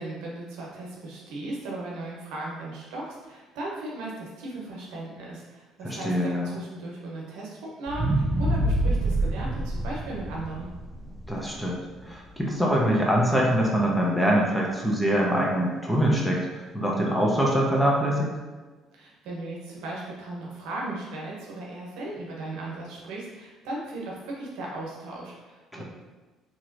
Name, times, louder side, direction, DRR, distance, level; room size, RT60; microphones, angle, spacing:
voice 1, 0.0-10.7 18.9-25.8, right 2 dB, 80° right, -3 dB, 0.8 m, -37 dB
voice 2, 5.8-6.5 11.3-16.4 16.7-18.3 25.7-25.8, equal, 5° left, -3 dB, 0.7 m, -24 dB
sound 1, 7.9-12.1 12.6-12.7, right 1 dB, 30° right, 0.4 m, -27 dB
3.1 x 2.9 x 2.6 m, 1.3 s
supercardioid pair, 85°, 0 cm